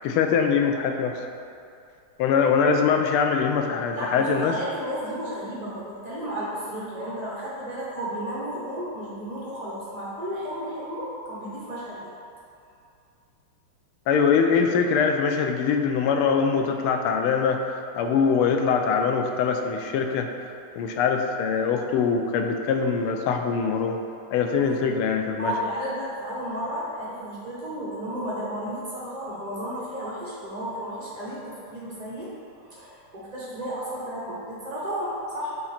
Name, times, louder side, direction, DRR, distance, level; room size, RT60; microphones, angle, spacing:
voice 1, 0.0-1.2 2.2-4.5 14.1-20.3 20.8-24.0 24.3-25.5, left 6 dB, 85° left, 4 dB, 1.5 m, -23 dB
voice 2, 3.9-12.0 24.6-24.7 25.4-32.3 32.6-35.5, equal, 70° right, -7 dB, 0.4 m, -33 dB
8.7 x 3.0 x 4.2 m, 2.5 s
omnidirectional pair, 2.4 m